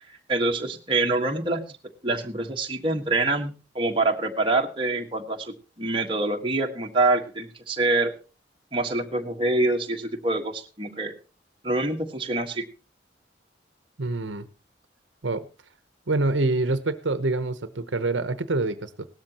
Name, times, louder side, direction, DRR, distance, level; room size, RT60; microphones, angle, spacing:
voice 1, 0.1-1.8 2.0-8.1 8.7-11.1 11.6-12.6, right 2 dB, 25° right, 1 dB, 1.5 m, -25 dB
voice 2, 14.0-14.5 15.2-15.4 16.1-19.1, right 2 dB, 75° right, 12 dB, 0.9 m, -26 dB
18.0 x 13.0 x 3.0 m, 0.32 s
head